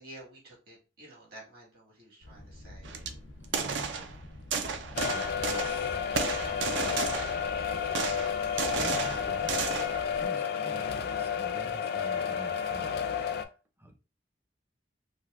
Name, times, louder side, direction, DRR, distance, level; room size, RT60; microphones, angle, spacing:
voice 1, 0.0-2.9 6.8-7.3 7.6-8.8, right 1 dB, 55° right, -4 dB, 1.7 m, -52 dB
Thunder, 2.2-10.3, left 1 dB, 90° left, 0.6 m, -47 dB
sound 1, 2.8-3.1 3.4-4.1 4.5-5.9 6.2-7.5 7.9-10.0, right 5 dB, 75° right, 0.5 m, -33 dB
voice 2, 3.4-4.1 4.8-6.0 6.6-7.1 8.6-9.7 10.1-13.3 13.8-14.0, equal, 10° right, 3 dB, 0.5 m, -47 dB
sound 2, 5.0-13.5, left 7 dB, 55° left, 0.3 m, -31 dB
3.3 x 2.6 x 2.5 m, 0.33 s
head